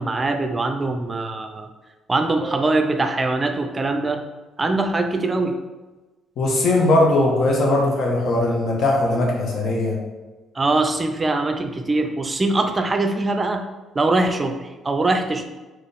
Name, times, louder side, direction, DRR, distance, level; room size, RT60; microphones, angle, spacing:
voice 1, 0.0-1.7 2.1-4.2 4.6-5.6 10.6-13.7 14.0-15.4, right 2 dB, 30° right, 6 dB, 0.4 m, -22 dB
voice 2, 6.4-10.0, left 2 dB, 60° left, -1 dB, 1.1 m, -19 dB
4.2 x 3.0 x 3.4 m, 1.2 s
hypercardioid pair, 60°, 0 cm